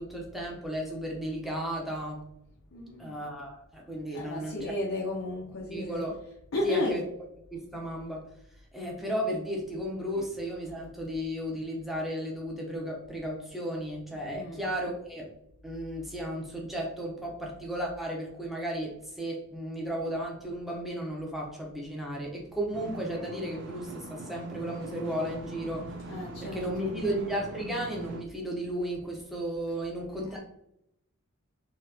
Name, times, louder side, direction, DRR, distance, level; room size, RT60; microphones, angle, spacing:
voice 1, 0.0-2.2 3.0-4.7 5.7-6.1 6.6-7.0 7.5-8.3 8.7-15.3 15.6-26.1 26.4-30.4, equal, ahead, -2 dB, 0.9 m, -34 dB
voice 2, 2.7-3.1 4.1-6.0 6.5-6.9 14.3-14.6 26.1-26.9, left 1 dB, 65° left, -2 dB, 0.7 m, -33 dB
sound 1, 22.7-28.2, right 2 dB, 60° right, 0.6 m, -42 dB
3.9 x 3.0 x 2.8 m, 0.78 s
head